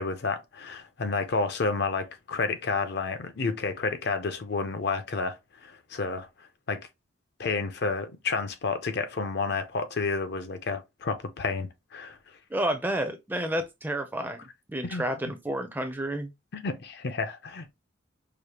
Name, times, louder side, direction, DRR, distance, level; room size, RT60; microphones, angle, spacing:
voice 1, 0.0-6.3 6.7-6.9 7.4-12.2 14.9-15.3 16.5-17.7, left 4 dB, 55° left, 0.5 m, -30 dB
voice 2, 12.5-16.3, right 1 dB, 10° right, 0.4 m, -30 dB
4.9 x 2.1 x 2.9 m
head